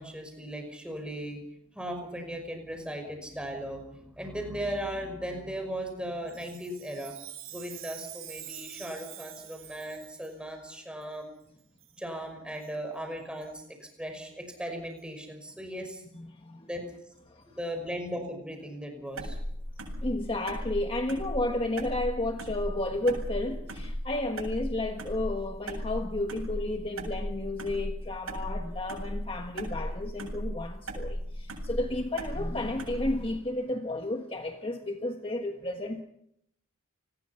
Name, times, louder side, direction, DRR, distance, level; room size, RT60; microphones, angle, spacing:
voice 1, 0.0-1.4 1.7-7.2 7.5-11.3 12.0-16.0 16.6-16.8 17.5-19.4, equal, 5° right, 4 dB, 5.6 m, -37 dB
Chime, 6.3-10.4 11.0-11.1 11.8-12.0 12.5-12.7 13.4-13.5 14.1-14.2 15.0-15.1, right 12 dB, 70° right, 7.0 m, -46 dB
voice 2, 16.1-16.7 17.3-17.6 20.0-36.0, left 1 dB, 25° left, 4 dB, 1.4 m, -32 dB
sound 1, 19.2-33.3, equal, 85° right, 7.9 m, -36 dB
29.5 x 20.5 x 5.7 m, 0.74 s
head